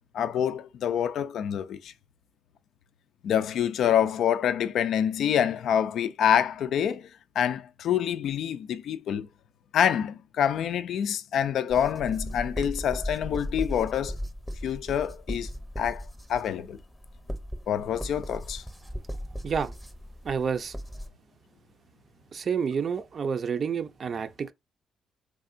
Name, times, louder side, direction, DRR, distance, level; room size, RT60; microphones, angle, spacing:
voice 1, 0.1-1.9 3.2-7.1 7.4-9.3 9.7-14.2 14.6-15.5 15.8-16.8 17.7-18.6, left 9 dB, 70° left, 0.3 m, -26 dB
sound 1, 11.7-21.1, equal, 5° left, 0.7 m, -37 dB
voice 2, 20.2-20.7 22.3-24.5, right 6 dB, 50° right, 0.4 m, -29 dB
3.5 x 3.3 x 2.5 m
cardioid pair, 90°, 0 cm